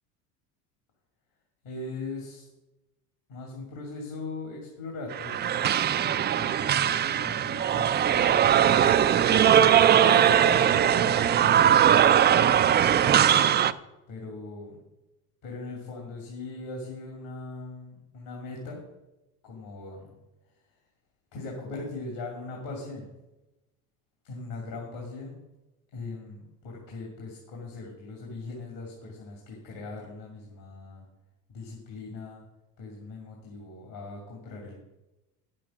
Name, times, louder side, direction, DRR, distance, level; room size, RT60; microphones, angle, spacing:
voice 1, 1.6-2.5 3.3-5.6 5.9-9.2 9.6-12.3 13.0-13.6 14.1-14.8 15.4-18.8 19.4-20.2 21.3-23.1 24.2-25.4 25.9-31.0 31.5-32.4 32.8-34.8, left 3 dB, 65° left, -1 dB, 2.8 m, -40 dB
sound 1, 5.1-13.7, right 9 dB, 25° right, 0.3 m, -20 dB
9.3 x 7.5 x 6.3 m, 1.0 s
hypercardioid pair, 75°, 47 cm